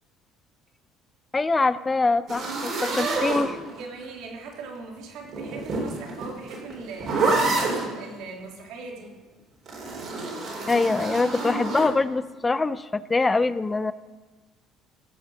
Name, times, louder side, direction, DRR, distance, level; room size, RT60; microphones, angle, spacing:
voice 1, 1.3-3.5 10.7-13.9, left 3 dB, 15° left, 15 dB, 0.5 m, -24 dB
sound 1, 2.3-4.0 5.2-7.9 9.7-11.9, right 3 dB, 50° right, 3.9 m, -28 dB
voice 2, 2.9-9.2, right 3 dB, 75° right, 0 dB, 3.1 m, -39 dB
16.5 x 6.9 x 6.2 m, 1.3 s
cardioid pair, 115°, 0 cm